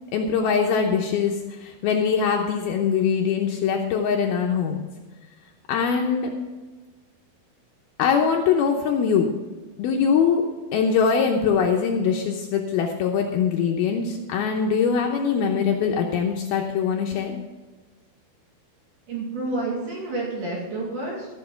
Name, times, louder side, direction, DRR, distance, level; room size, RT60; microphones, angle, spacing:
voice 1, 0.1-1.3 1.6-4.8 5.7-6.3 8.0-9.3 9.8-10.4 10.7-17.4, left 6 dB, 75° left, 1 dB, 2.6 m, -22 dB
voice 2, 19.1-21.3, right 2 dB, 55° right, -4 dB, 3.7 m, -29 dB
14.0 x 7.1 x 5.8 m, 1.3 s
omnidirectional pair, 4.8 m